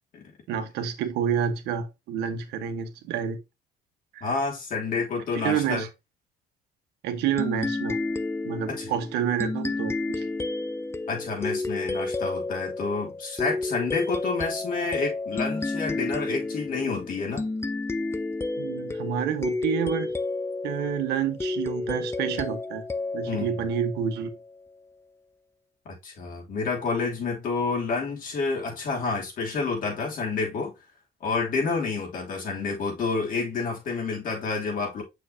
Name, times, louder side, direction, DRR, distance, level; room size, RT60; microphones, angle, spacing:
voice 1, 0.5-3.4 4.1-4.3 5.3-5.9 7.0-8.0 8.4-10.3 18.6-20.1 20.6-22.8 23.1-24.3, right 8 dB, 85° right, 1.3 m, -28 dB
voice 2, 4.2-5.8 8.7-8.9 11.1-17.5 23.3-23.5 25.8-30.7 31.2-35.0, left 4 dB, 55° left, 2.9 m, -29 dB
sound 1, 7.4-24.5, left 3 dB, 15° left, 0.6 m, -31 dB
6.6 x 6.4 x 2.8 m
cardioid pair, 110°, 17 cm